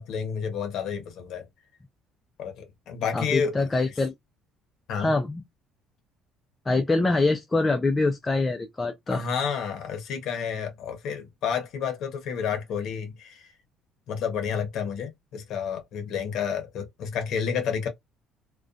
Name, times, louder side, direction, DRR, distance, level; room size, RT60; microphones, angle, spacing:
voice 1, 0.0-1.4 2.4-3.5 4.9-5.1 9.1-13.5 14.1-17.9, left 7 dB, 55° left, 0.7 m, -30 dB
voice 2, 3.1-4.1 5.0-5.4 6.7-9.2, left 3 dB, 15° left, 0.3 m, -24 dB
2.5 x 2.2 x 2.3 m
cardioid pair, 165°, 0 cm